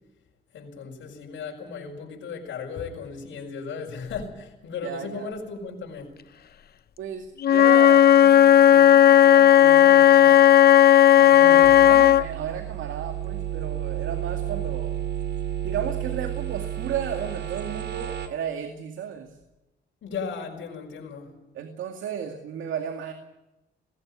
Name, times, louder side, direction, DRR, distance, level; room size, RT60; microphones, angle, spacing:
voice 1, 0.5-6.1 11.3-11.7 20.0-21.3, left 5 dB, 70° left, 5.7 m, -36 dB
voice 2, 4.8-5.3 7.0-10.4 11.1-14.9 15.6-19.4 21.5-23.1, right 8 dB, 75° right, 2.3 m, -34 dB
Wind instrument woodwind instrument, 7.4-12.2, left 11 dB, 50° left, 0.8 m, -14 dB
sound 1, 11.6-18.3, right 11 dB, 60° right, 3.1 m, -31 dB
19.5 x 16.0 x 9.7 m
cardioid pair, 90°, 20 cm